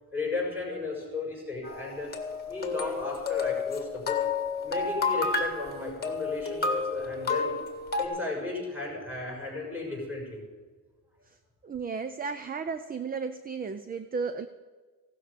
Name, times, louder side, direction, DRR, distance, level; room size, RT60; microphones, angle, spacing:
voice 1, 0.1-2.1 2.5-4.2 4.6-7.6 8.0-10.5, left 3 dB, 5° right, -4 dB, 6.1 m, -35 dB
sound 1, 1.6-8.0, left 4 dB, 25° left, 1.7 m, -30 dB
voice 2, 11.6-14.5, right 5 dB, 25° right, 11 dB, 0.5 m, -34 dB
16.0 x 12.5 x 5.1 m, 1.4 s
wide cardioid pair, 165°, 35 cm